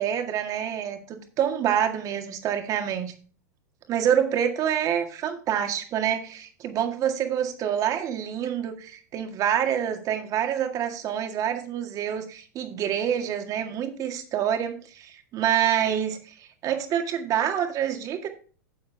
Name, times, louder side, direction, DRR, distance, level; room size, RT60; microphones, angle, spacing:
voice 1, 0.0-3.1 3.9-18.3, right 9 dB, 35° right, 6 dB, 1.9 m, -27 dB
10.0 x 7.0 x 3.4 m, 0.39 s
hypercardioid pair, 100°, 9 cm